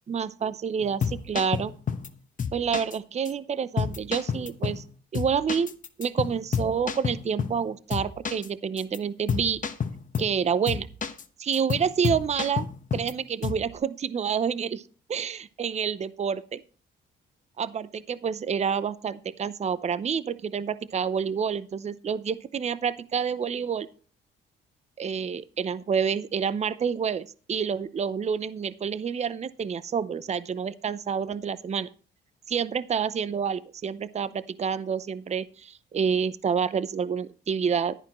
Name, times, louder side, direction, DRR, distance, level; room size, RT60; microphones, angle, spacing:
voice 1, 0.1-1.7 2.5-4.8 5.1-5.7 6.0-9.6 10.2-10.9 11.4-12.7 12.9-14.8 15.1-16.6 17.6-23.9 25.0-31.9 32.5-37.9, right 7 dB, 35° right, 16 dB, 0.6 m, -28 dB
sound 1, 0.8-2.1 2.4-3.0 3.2-3.3 3.8-4.9 5.1-7.6 7.9-8.5 8.8-9.0 9.3-10.4 10.7-11.2 11.5-13.1 13.4-13.7, left 6 dB, 40° left, 1.1 m, -30 dB
11.5 x 10.5 x 3.1 m, 0.40 s
cardioid pair, 90°, 20 cm